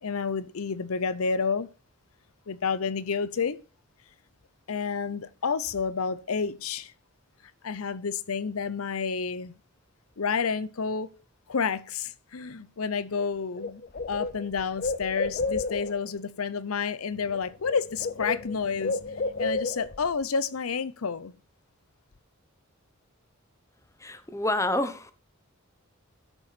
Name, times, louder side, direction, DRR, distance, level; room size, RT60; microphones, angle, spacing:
voice 1, 0.0-1.7 2.5-3.6 4.7-6.9 7.6-9.5 10.2-11.1 11.5-13.8 14.1-19.0 19.4-21.4, left 5 dB, 80° left, 0.7 m, -30 dB
Bird, 13.2-13.3 13.6-16.1 17.1-17.4 17.6-20.1, left 3 dB, 45° left, 0.8 m, -32 dB
voice 2, 24.0-25.1, left 1 dB, 15° left, 1.0 m, -28 dB
12.5 x 6.9 x 4.2 m
head